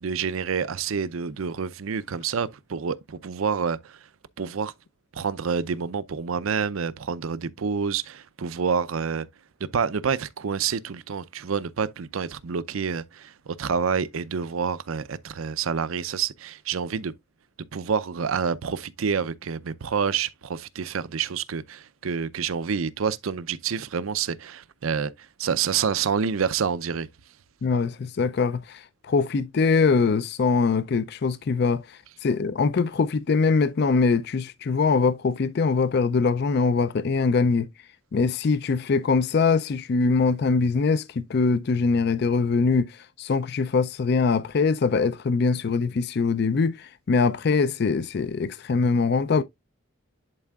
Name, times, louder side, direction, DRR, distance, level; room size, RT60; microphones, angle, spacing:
voice 1, 0.0-4.0 4.4-4.7 5.1-9.3 9.7-17.1 17.7-27.1, right 6 dB, 85° right, 0.5 m, -28 dB
voice 2, 27.6-37.7 38.1-49.4, left 4 dB, 50° left, 0.4 m, -23 dB
11.0 x 4.4 x 2.3 m
head